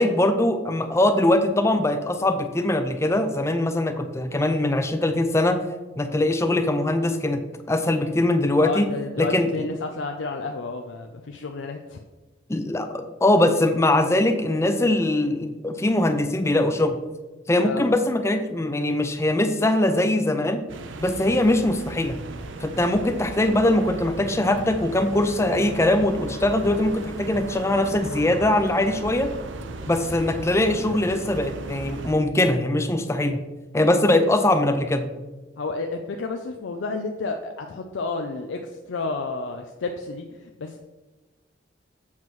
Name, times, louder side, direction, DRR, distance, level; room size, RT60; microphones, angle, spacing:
voice 1, 0.0-5.6 6.0-7.4 7.7-8.9 9.2-9.7 12.5-17.0 17.5-20.6 21.0-22.2 22.6-29.3 29.9-33.4 33.7-35.1, left 1 dB, 15° left, 8 dB, 0.4 m, -22 dB
voice 2, 8.6-12.0 17.6-17.8 35.6-40.8, left 3 dB, 80° left, 4 dB, 0.5 m, -31 dB
sound 1, 20.7-32.1, right 3 dB, 75° right, 0.6 m, -36 dB
7.3 x 3.1 x 5.9 m, 1.2 s
head